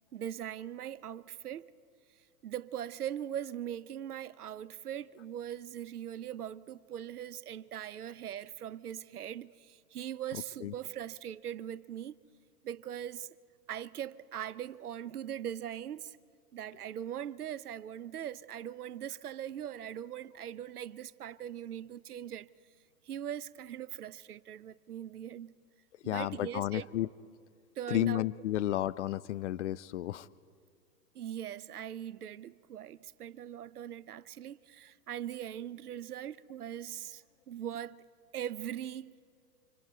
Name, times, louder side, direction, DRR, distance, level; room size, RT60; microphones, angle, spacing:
voice 1, 0.1-1.7 2.4-12.2 12.6-13.3 13.7-16.2 16.5-22.5 23.0-25.5 26.0-26.9 27.8-28.2 31.1-38.0 38.3-39.2, right 10 dB, 65° right, 0.8 m, -41 dB
voice 2, 26.0-27.1 27.9-30.3, left 14 dB, 45° left, 0.6 m, -32 dB
29.5 x 26.5 x 4.4 m
figure-of-eight pair, 110°, 49 cm